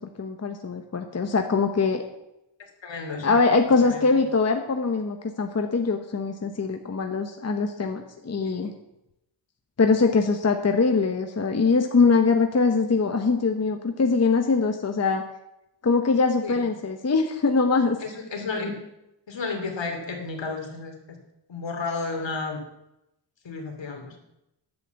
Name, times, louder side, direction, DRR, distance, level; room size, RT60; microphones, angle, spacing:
voice 1, 0.2-2.0 3.2-8.7 9.8-15.2 15.8-18.0, left 4 dB, 35° left, 5 dB, 1.0 m, -22 dB
voice 2, 2.8-3.4 3.8-4.1 8.4-8.7 16.4-16.6 18.0-18.7 19.3-21.2 21.5-22.6 23.4-24.2, left 4 dB, 70° left, 2 dB, 2.9 m, -32 dB
10.5 x 7.7 x 8.0 m, 0.88 s
wide cardioid pair, 135°, 45 cm